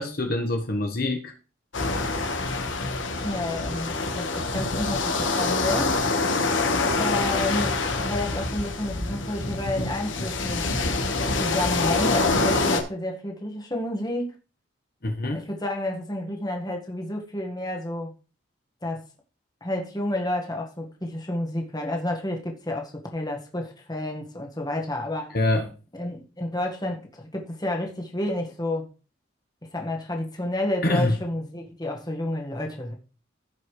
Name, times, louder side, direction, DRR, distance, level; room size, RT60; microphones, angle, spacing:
voice 1, 0.0-1.3 9.8-9.9 10.2-10.3 15.0-15.5 25.3-25.7 30.8-31.2, left 1 dB, 50° left, 1.3 m, -25 dB
sound 1, 1.7-12.8, left 3 dB, 85° left, 1.4 m, -26 dB
voice 2, 3.2-6.0 6.9-10.7 11.3-14.3 15.3-18.1 18.8-19.0 19.6-25.3 25.9-28.9 29.6-32.9, left 1 dB, 20° left, 1.6 m, -30 dB
15.5 x 5.5 x 3.3 m
head